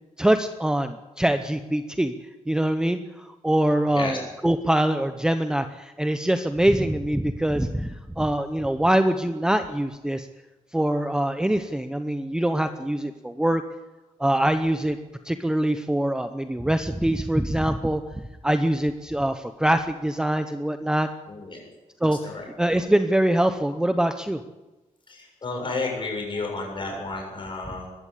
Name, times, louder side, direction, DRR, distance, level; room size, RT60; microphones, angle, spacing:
voice 1, 0.2-2.1 2.5-3.0 3.4-10.3 10.7-13.6 14.2-15.0 15.3-18.0 18.4-21.1 22.0-22.2 22.6-24.4, right 1 dB, 5° right, 8 dB, 0.8 m, -23 dB
voice 2, 3.8-4.2 21.3-21.7 22.0-22.5 25.1-27.9, left 3 dB, 40° left, 1 dB, 7.1 m, -32 dB
21.5 x 15.0 x 8.3 m, 1.1 s
wide cardioid pair, 160°, 13 cm